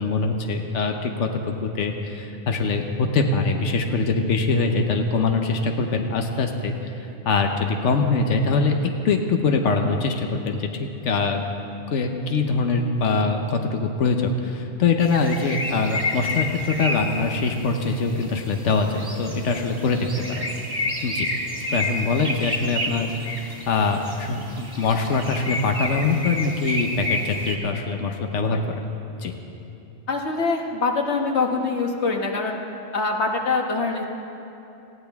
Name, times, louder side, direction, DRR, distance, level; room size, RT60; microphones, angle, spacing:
voice 1, 0.0-8.8 9.0-11.4 11.9-20.5 21.0-21.3 21.7-23.1 23.4-28.6 29.2-29.3, left 4 dB, 90° left, 4 dB, 1.2 m, -23 dB
sound 1, 15.0-27.6, left 1 dB, 20° right, 1.4 m, -30 dB
voice 2, 30.1-32.6 32.9-34.0, left 3 dB, 70° left, 2 dB, 1.5 m, -24 dB
19.0 x 15.0 x 3.5 m, 2.9 s
omnidirectional pair, 1.2 m